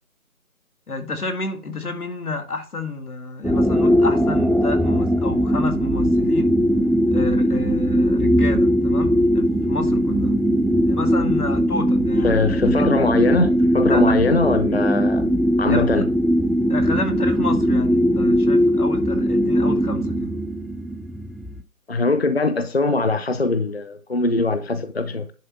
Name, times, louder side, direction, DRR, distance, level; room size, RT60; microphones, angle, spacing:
voice 1, 0.9-6.5 7.1-10.3 10.9-12.4 12.8-13.0 13.9-14.1 15.7-16.1 16.7-20.4, left 3 dB, 90° left, 2.4 m, -30 dB
sound 1, 3.4-21.6, equal, ahead, 0.3 m, -19 dB
voice 2, 12.2-15.3 15.6-16.0 21.9-25.3, left 3 dB, 45° left, 0.6 m, -21 dB
11.0 x 3.7 x 5.5 m
figure-of-eight pair, 175°, 43 cm